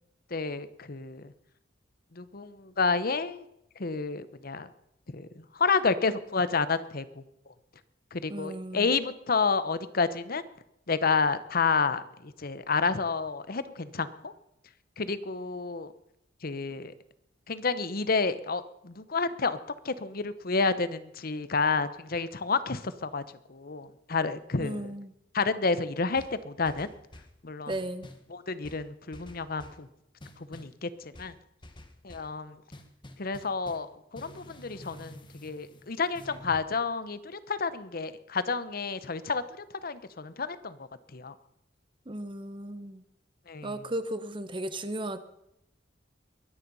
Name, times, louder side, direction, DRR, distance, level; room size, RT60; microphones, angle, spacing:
voice 1, 0.3-1.3 2.1-3.4 3.8-4.7 5.1-5.3 5.5-7.1 8.1-10.4 10.9-14.3 15.0-15.9 16.4-16.9 17.5-19.6 19.8-23.2 23.5-24.9 25.3-26.9 27.4-27.7 28.3-29.9 30.4-31.3 32.0-32.6 33.2-39.4 39.8-41.3 43.5-43.7, left 4 dB, 55° left, 14 dB, 1.0 m, -30 dB
voice 2, 8.3-8.9 24.6-25.1 27.7-28.1 42.1-43.0 43.6-45.2, right 1 dB, 30° right, 12 dB, 1.0 m, -35 dB
sound 1, 26.2-27.4 27.7-28.3 28.6-29.8 30.2-30.8 31.1-32.3 32.7-33.9 34.1-36.7, left 1 dB, 25° left, 1.3 m, -49 dB
22.5 x 10.0 x 5.5 m, 0.80 s
head